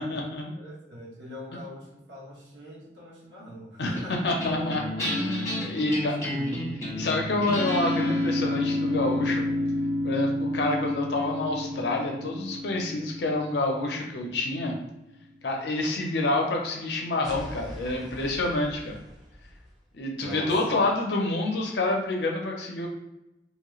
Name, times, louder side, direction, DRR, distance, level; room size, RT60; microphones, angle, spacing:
voice 1, 0.0-0.5 3.8-4.0 4.2-6.1 7.0-9.5 10.0-14.7 15.4-19.0 19.9-22.9, left 2 dB, 70° left, 1 dB, 0.5 m, -28 dB
voice 2, 0.6-4.3 5.6-6.6 20.2-20.8, equal, 75° right, -4 dB, 1.0 m, -42 dB
sound 1, 4.0-14.6, left 1 dB, 20° left, 1.2 m, -30 dB
sound 2, 17.2-19.8, equal, ahead, 0.6 m, -43 dB
2.9 x 2.3 x 3.0 m, 0.92 s
head